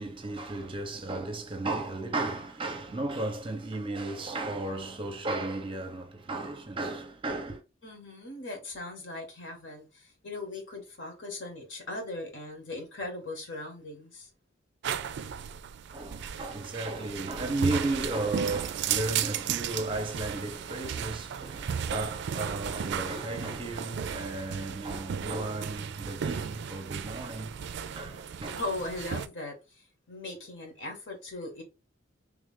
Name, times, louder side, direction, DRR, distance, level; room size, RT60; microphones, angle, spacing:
voice 1, 0.0-7.6 15.9-27.7 27.9-28.6, right 2 dB, 25° right, 0.6 m, -34 dB
voice 2, 7.8-14.3 28.5-31.6, left 2 dB, 65° left, 1.5 m, -39 dB
sound 1, 14.8-29.3, right 8 dB, 60° right, 0.3 m, -35 dB
3.3 x 2.5 x 3.6 m
head